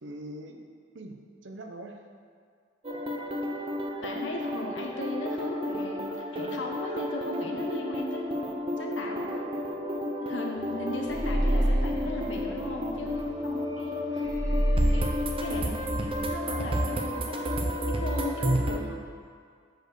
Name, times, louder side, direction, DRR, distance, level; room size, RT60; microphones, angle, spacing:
voice 1, 0.0-0.6 0.9-2.0 15.6-16.3 18.7-19.0, right 2 dB, 80° right, 3 dB, 0.8 m, -42 dB
sound 1, 2.8-18.8, equal, 30° right, 0.6 m, -31 dB
voice 2, 4.0-8.3 8.8-9.5 10.2-14.3 14.9-15.7 16.3-17.6 17.9-18.8, left 2 dB, 75° left, 0 dB, 1.0 m, -37 dB
sound 2, 11.1-13.2 14.2-16.3, equal, 55° left, 1.8 m, -28 dB
8.1 x 4.5 x 6.4 m, 2.1 s
head